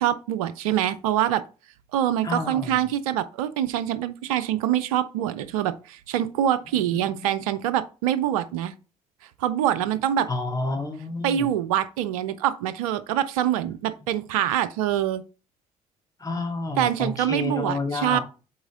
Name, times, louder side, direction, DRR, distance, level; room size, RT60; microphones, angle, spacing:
voice 1, 0.0-1.4 1.9-8.7 9.4-10.3 11.2-15.2 16.8-18.2, right 11 dB, 85° right, 0.4 m, -25 dB
voice 2, 2.2-2.8 6.9-7.2 10.3-11.5 16.2-18.2, left 2 dB, 20° left, 2.4 m, -30 dB
7.0 x 4.3 x 3.7 m
hypercardioid pair, 50°, 17 cm